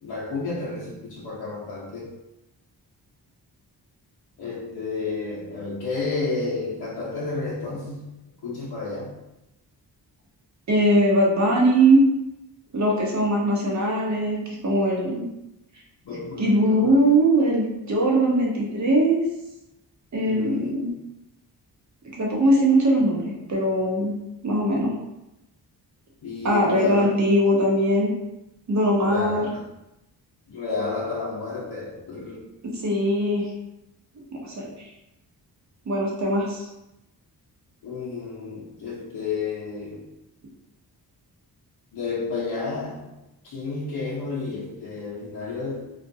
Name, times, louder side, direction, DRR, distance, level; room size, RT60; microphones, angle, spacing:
voice 1, 0.0-2.2 4.4-8.1 8.4-9.1 16.1-17.0 20.2-21.0 26.2-27.1 29.0-29.7 30.5-32.5 37.8-40.0 41.9-43.1 43.4-45.9, left 3 dB, 70° left, -7 dB, 0.7 m, -31 dB
voice 2, 10.7-12.0 12.7-15.2 16.4-19.2 20.1-20.9 22.2-24.1 24.4-25.0 26.4-28.1 28.7-29.5 32.6-33.5 34.3-34.9 35.9-36.7, right 1 dB, 45° right, -2 dB, 0.8 m, -21 dB
2.4 x 2.2 x 2.6 m, 0.91 s
cardioid pair, 75°, 41 cm